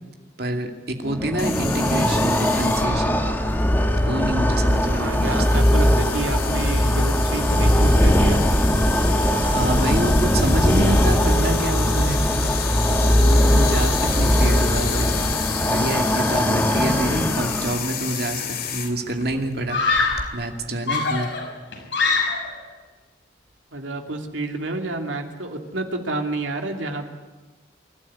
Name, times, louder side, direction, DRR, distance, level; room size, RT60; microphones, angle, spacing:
voice 1, 0.4-3.2 4.0-5.6 9.4-12.8 13.2-15.1 15.6-19.8 20.3-21.3, right 1 dB, 55° right, 4 dB, 2.4 m, -27 dB
sound 1, 1.0-18.0, equal, 10° left, 1.5 m, -20 dB
sound 2, 1.4-20.3, left 7 dB, 50° left, 2.7 m, -31 dB
voice 2, 4.9-8.4 23.7-27.1, right 2 dB, 90° right, 4 dB, 2.7 m, -29 dB
Screaming, 18.3-18.6 19.7-20.3 20.9-22.6, left 4 dB, 75° left, 5.9 m, -23 dB
27.5 x 12.5 x 9.8 m, 1.2 s
head